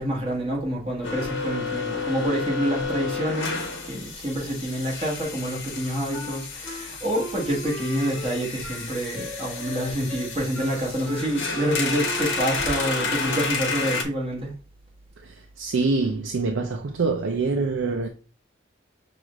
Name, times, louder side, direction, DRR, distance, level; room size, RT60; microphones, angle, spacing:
voice 1, 0.0-14.5, right 1 dB, 30° right, 1.5 m, -27 dB
sound 1, 1.0-14.0, left 4 dB, 70° left, 1.0 m, -31 dB
Wind instrument woodwind instrument, 6.1-13.6, left 1 dB, 5° right, 1.7 m, -38 dB
voice 2, 15.6-18.1, right 3 dB, 80° right, 0.5 m, -25 dB
6.1 x 2.5 x 3.0 m
head